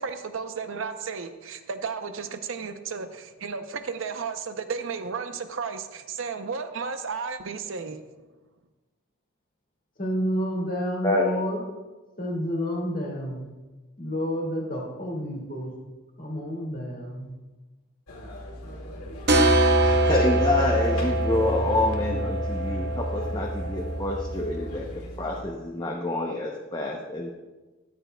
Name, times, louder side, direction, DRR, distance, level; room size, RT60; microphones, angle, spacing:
voice 1, 0.0-8.0, right 5 dB, 65° right, 9 dB, 0.6 m, -33 dB
voice 2, 10.0-11.6 12.2-13.4 14.0-15.7 16.2-17.3, equal, 40° left, -2 dB, 1.9 m, -29 dB
voice 3, 11.0-11.3 19.8-24.9 25.2-27.3, left 2 dB, 20° left, -1 dB, 0.6 m, -27 dB
sound 1, 18.1-25.4, equal, 90° left, 2.0 m, -39 dB
sound 2, 19.3-24.7, right 1 dB, 50° right, 1.0 m, -24 dB
13.5 x 9.1 x 2.2 m, 1.2 s
head